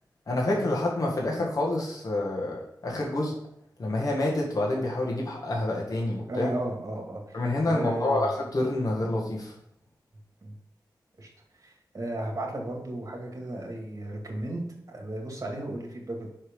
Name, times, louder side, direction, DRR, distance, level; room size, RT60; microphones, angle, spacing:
voice 1, 0.3-3.3 3.8-6.5 7.3-9.5, left 2 dB, 50° left, -3 dB, 1.7 m, -28 dB
voice 2, 6.3-8.3 10.4-10.5 11.2-11.3 11.6-16.3, right 1 dB, 45° right, 1 dB, 2.2 m, -34 dB
5.6 x 5.0 x 5.3 m, 0.73 s
cardioid pair, 60°, 8 cm